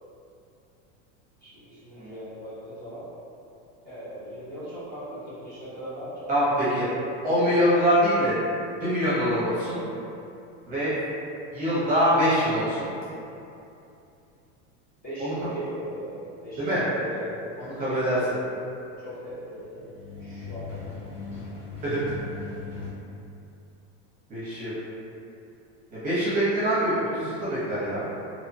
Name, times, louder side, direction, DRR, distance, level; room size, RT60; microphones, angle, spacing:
voice 1, 1.4-3.1 3.8-6.3 6.6-7.0 15.0-16.2 16.4-17.3 17.8-18.5 19.0-19.9 20.2-20.7, equal, 25° left, -11 dB, 0.7 m, -38 dB
voice 2, 6.3-6.9 7.2-8.4 8.8-9.8 10.7-10.9 11.5-12.9 15.2-15.3 16.6-16.8 17.6-18.2 21.8-22.0 24.3-24.8 25.9-28.1, equal, 25° right, -11 dB, 0.7 m, -24 dB
sound 1, 12.0-13.4 19.5-22.9, left 4 dB, 60° left, 1.0 m, -39 dB
2.9 x 2.1 x 2.6 m, 2.7 s
supercardioid pair, 160°, 36 cm